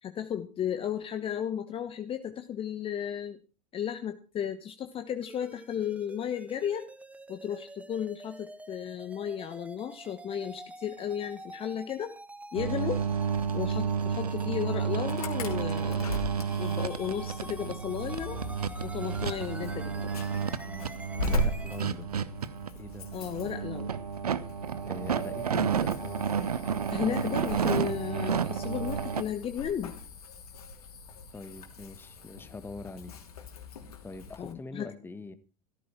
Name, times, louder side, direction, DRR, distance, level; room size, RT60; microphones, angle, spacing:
voice 1, 0.0-3.4 3.7-6.9 7.3-12.1 12.5-13.0 13.5-16.3 16.6-18.4 18.8-20.1 23.1-23.9 26.9-29.9 34.4-34.9, left 9 dB, 30° left, 1.2 m, -34 dB
sound 1, 5.2-21.8, right 2 dB, 5° right, 1.1 m, -47 dB
sound 2, 12.5-29.2, right 7 dB, 75° right, 0.9 m, -31 dB
Insect / Alarm, 15.1-34.5, left 1 dB, 70° left, 3.1 m, -39 dB
voice 2, 21.2-22.1 22.7-23.1 24.8-26.4 31.3-33.2 34.0-35.3, left 3 dB, 10° left, 1.6 m, -43 dB
15.5 x 14.0 x 4.4 m
figure-of-eight pair, 80°, 20 cm